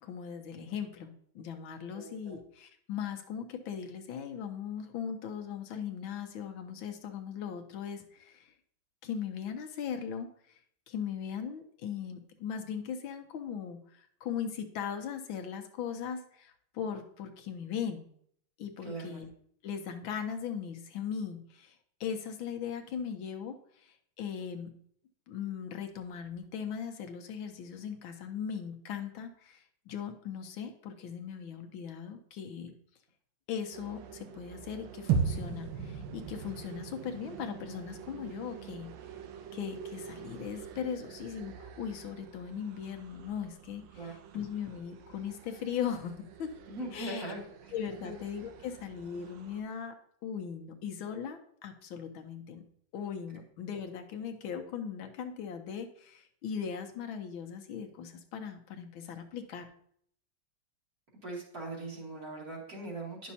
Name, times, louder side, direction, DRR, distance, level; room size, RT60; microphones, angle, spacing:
voice 1, 0.0-8.5 9.0-10.6 10.9-18.1 18.6-19.3 19.6-21.7 22.0-24.7 25.3-32.7 33.5-38.9 39.5-46.5 46.9-47.4 47.7-49.9 50.2-52.6 52.9-59.6, left 7 dB, 75° left, 6 dB, 1.5 m, -39 dB
voice 2, 1.9-2.4 18.8-19.2 43.9-44.1 46.7-47.7 48.0-48.1 61.2-63.3, right 2 dB, 45° right, -4 dB, 2.7 m, -41 dB
sound 1, 33.7-49.6, right 8 dB, 70° right, 1.3 m, -49 dB
sound 2, 35.1-39.4, right 6 dB, 90° right, 1.8 m, -35 dB
10.5 x 6.2 x 2.8 m, 0.64 s
omnidirectional pair, 2.3 m